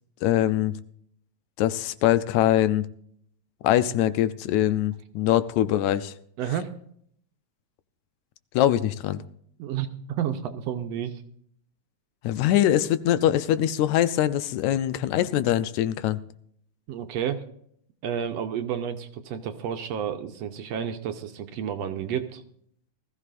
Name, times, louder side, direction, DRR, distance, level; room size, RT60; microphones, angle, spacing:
voice 1, 0.2-0.7 1.6-2.9 3.6-6.1 8.5-9.2 12.2-16.2, left 12 dB, 80° left, 13 dB, 2.0 m, -23 dB
voice 2, 6.4-6.7 9.6-11.2 16.9-17.4 18.0-22.4, right 9 dB, 70° right, 7 dB, 1.8 m, -31 dB
19.5 x 14.5 x 2.5 m, 0.66 s
omnidirectional pair, 3.3 m